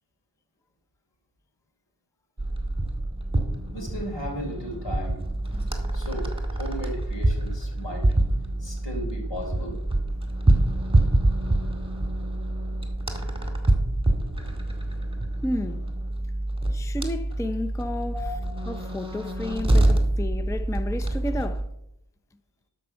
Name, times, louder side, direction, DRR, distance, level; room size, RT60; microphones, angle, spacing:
sound 1, 2.4-21.7, right 1 dB, 15° right, 2.0 m, -26 dB
voice 1, 3.7-5.2 5.9-8.1 8.6-9.8 18.1-18.4, equal, 80° left, 3.7 m, -35 dB
voice 2, 15.4-15.8 16.7-18.2 18.7-21.6, left 1 dB, 5° left, 0.5 m, -32 dB
12.0 x 5.2 x 6.9 m
wide cardioid pair, 55°, 43 cm